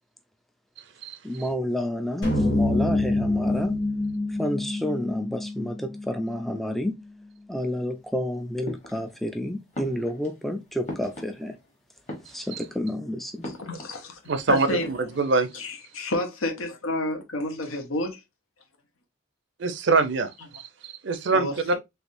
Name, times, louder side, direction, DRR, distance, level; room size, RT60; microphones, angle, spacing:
voice 1, 1.2-3.8 4.3-7.0 7.5-11.6 12.2-13.5, left 1 dB, ahead, 0.3 m, -30 dB
sound 1, 2.2-6.5, left 2 dB, 60° left, 1.5 m, -26 dB
sound 2, 8.6-9.4 9.7-11.7 12.0-12.8 13.4-14.4 14.7-15.2, left 1 dB, 35° left, 1.1 m, -40 dB
voice 2, 13.6-14.1 14.5-14.9 15.6-15.7 15.9-18.2 21.3-21.7, left 1 dB, 85° left, 0.9 m, -29 dB
voice 3, 14.3-15.5 19.6-21.7, right 3 dB, 60° right, 0.5 m, -24 dB
3.4 x 3.2 x 2.5 m
head